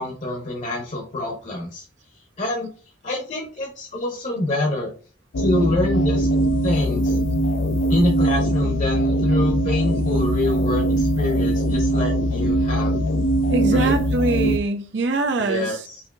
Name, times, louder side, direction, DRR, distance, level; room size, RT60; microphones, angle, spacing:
voice 1, 0.0-1.8 2.4-2.7 3.0-4.9 5.4-6.3 6.6-7.2 7.9-13.0 13.7-14.0 15.4-16.0, left 1 dB, 40° left, 0.8 m, -26 dB
sound 1, 5.3-14.6, right 1 dB, 85° left, 0.5 m, -21 dB
voice 2, 13.5-15.8, right 2 dB, 70° right, 0.6 m, -23 dB
5.6 x 2.6 x 2.5 m
head